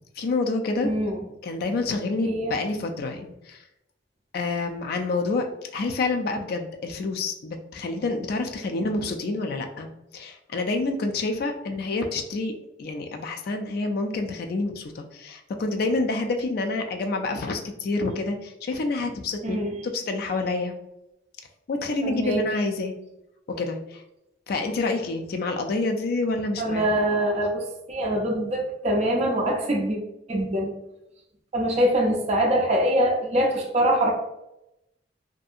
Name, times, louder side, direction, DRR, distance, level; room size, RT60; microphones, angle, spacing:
voice 1, 0.2-0.9 1.4-3.6 4.3-5.5 5.7-9.9 10.1-12.5 12.8-20.7 21.7-22.9 23.5-24.0 24.5-26.9, left 3 dB, 55° left, 4 dB, 0.3 m, -28 dB
voice 2, 0.8-1.2 2.2-2.6 19.4-19.8 22.0-22.4 26.6-30.0 30.3-30.7 31.5-34.1, right 1 dB, 35° right, 0 dB, 0.5 m, -24 dB
2.6 x 2.6 x 2.4 m, 0.87 s
head